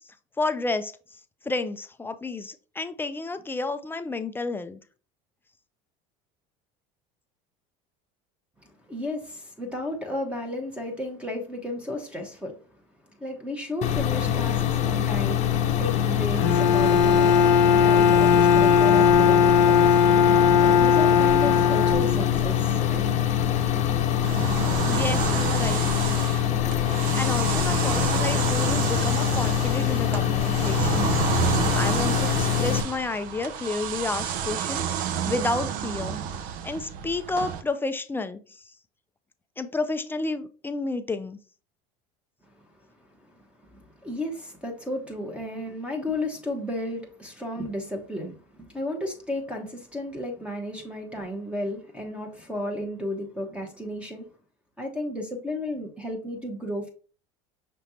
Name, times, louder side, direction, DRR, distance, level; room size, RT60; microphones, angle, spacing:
voice 1, 0.4-0.9 1.4-4.8 24.9-25.9 27.1-31.1 31.7-36.2 36.6-38.6 39.6-41.4, left 3 dB, 15° left, 0.4 m, -31 dB
voice 2, 8.9-12.6 13.2-15.5 15.8-23.1 43.2-43.4 43.7-54.3 54.8-56.9, left 1 dB, 5° right, 1.1 m, -33 dB
sound 1, 13.8-32.8, left 10 dB, 45° left, 0.7 m, -24 dB
Bowed string instrument, 16.4-22.5, left 7 dB, 85° left, 0.8 m, -19 dB
sound 2, 24.2-37.6, right 9 dB, 60° right, 0.5 m, -30 dB
5.9 x 3.2 x 2.8 m
supercardioid pair, 120°, 16 cm